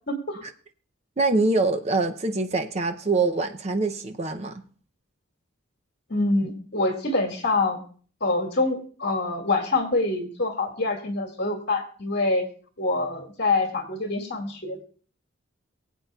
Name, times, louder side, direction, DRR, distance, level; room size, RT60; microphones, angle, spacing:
voice 1, 0.1-0.4 6.1-7.8 8.2-12.5 12.8-14.8, left 2 dB, 50° left, 2.0 m, -25 dB
voice 2, 1.2-4.6, right 3 dB, 30° right, 0.6 m, -24 dB
23.0 x 8.2 x 2.3 m
head